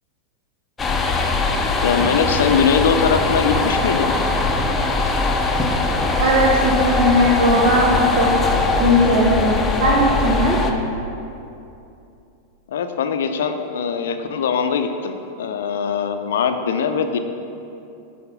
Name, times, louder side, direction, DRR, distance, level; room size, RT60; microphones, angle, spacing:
sound 1, 0.8-10.7, left 3 dB, 15° left, 0.8 m, -21 dB
voice 1, 1.8-4.1 12.7-17.2, left 6 dB, 60° left, 7 dB, 0.6 m, -21 dB
voice 2, 6.2-10.6, equal, 50° right, -2 dB, 1.2 m, -18 dB
11.0 x 4.3 x 6.9 m, 2.7 s
figure-of-eight pair, 90°, 0 cm